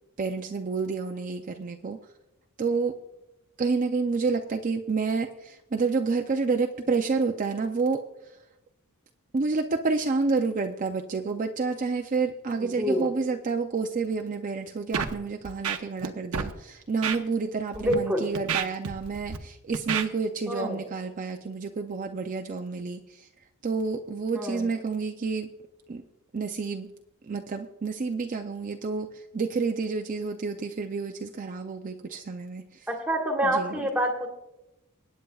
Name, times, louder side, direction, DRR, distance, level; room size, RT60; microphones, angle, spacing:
voice 1, 0.2-2.0 2.6-3.0 3.6-8.1 9.3-23.3 23.6-25.5 25.9-26.0 26.3-26.9 27.2-32.9 33.4-33.9, right 4 dB, 35° right, 4 dB, 0.5 m, -29 dB
voice 2, 12.6-13.1 17.8-18.3 20.5-20.8 24.3-24.6 33.1-34.3, equal, 5° right, 1 dB, 1.6 m, -26 dB
Scratching (performance technique), 14.9-15.1 15.5-16.1 16.3-16.5 17.0-17.2 17.7-17.9 18.4-19.4 19.7-20.1, right 6 dB, 85° right, 0.9 m, -29 dB
24.5 x 9.2 x 2.3 m, 0.93 s
head